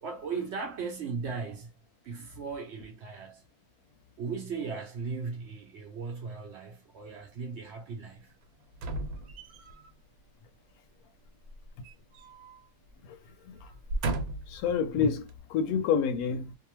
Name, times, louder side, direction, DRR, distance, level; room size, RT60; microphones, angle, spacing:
voice 1, 0.0-1.7 2.0-3.4 4.2-8.3, right 5 dB, 60° right, 0.7 m, -37 dB
sound 1, 8.7-9.9 11.4-12.6 12.9-13.1 13.7-14.6 15.3-15.4, right 2 dB, 85° right, 1.1 m, -35 dB
voice 2, 14.5-16.6, left 6 dB, 80° left, 1.0 m, -29 dB
2.7 x 2.1 x 2.9 m
omnidirectional pair, 1.5 m